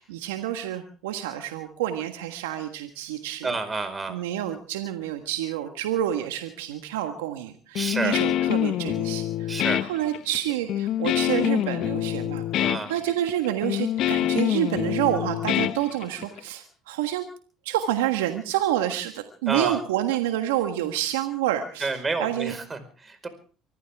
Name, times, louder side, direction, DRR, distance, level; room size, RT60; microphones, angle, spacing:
voice 1, 0.0-3.6 4.1-17.3 17.6-21.9 22.2-22.5, right 12 dB, 90° right, 6 dB, 1.4 m, -28 dB
voice 2, 3.4-4.2 7.7-8.2 9.5-9.8 12.6-12.9 19.5-19.8 21.8-23.3, right 3 dB, 25° right, 9 dB, 4.8 m, -29 dB
Guitar, 7.8-16.4, left 12 dB, 65° left, 0.7 m, -26 dB
24.5 x 15.0 x 3.6 m, 0.39 s
supercardioid pair, 75°, 0 cm